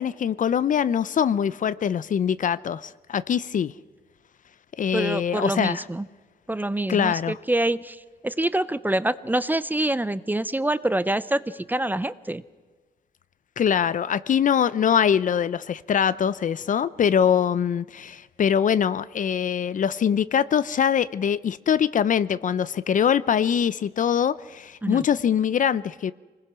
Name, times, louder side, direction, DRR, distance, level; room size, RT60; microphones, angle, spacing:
voice 1, 0.0-3.7 4.8-5.8 6.9-7.4 13.6-26.1, left 8 dB, 50° left, 0.6 m, -23 dB
voice 2, 4.9-6.1 6.5-12.4 24.8-25.0, right 1 dB, 10° right, 0.6 m, -26 dB
25.0 x 20.0 x 6.2 m
cardioid pair, 100°, 17 cm